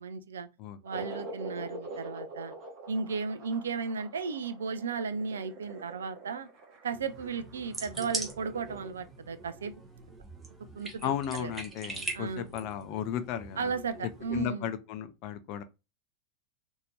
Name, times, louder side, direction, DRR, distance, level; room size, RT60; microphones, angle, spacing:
voice 1, 0.0-0.5 0.8-2.5 2.9-6.5 6.8-9.7 10.7-11.1 11.4-11.5 12.1-12.5 13.6-14.7, right 5 dB, 65° right, 0.5 m, -35 dB
sound 1, 0.9-8.9, right 2 dB, 40° right, 1.3 m, -45 dB
sound 2, 6.9-14.5, right 2 dB, 10° right, 1.0 m, -42 dB
voice 2, 11.0-13.7 14.3-15.6, left 10 dB, 40° left, 0.5 m, -35 dB
4.1 x 2.7 x 3.2 m
figure-of-eight pair, 90°, 0 cm